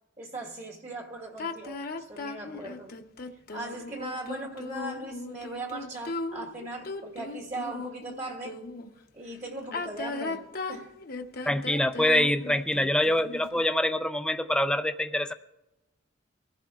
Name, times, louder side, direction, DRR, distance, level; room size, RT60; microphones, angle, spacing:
voice 1, 0.2-2.9 3.5-8.6 9.1-10.4 10.7-10.9, right 2 dB, 35° right, 1.4 m, -39 dB
sound 1, 1.4-8.9 9.6-13.6, left 3 dB, 50° left, 0.9 m, -37 dB
voice 2, 11.5-15.3, left 1 dB, 5° left, 0.4 m, -25 dB
24.0 x 15.5 x 2.4 m
head